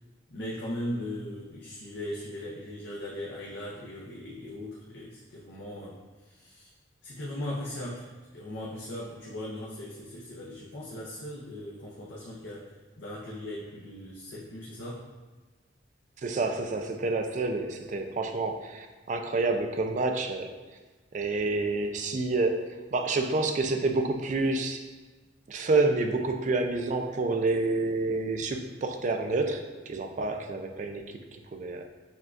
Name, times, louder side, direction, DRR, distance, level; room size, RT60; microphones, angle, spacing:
voice 1, 0.3-6.7 7.0-15.0, left 1 dB, 70° left, -5 dB, 0.6 m, -39 dB
voice 2, 16.2-20.6 21.1-24.9 25.5-31.2 31.5-31.8, right 3 dB, 40° right, 5 dB, 0.3 m, -28 dB
6.9 x 2.3 x 2.5 m, 1.3 s
head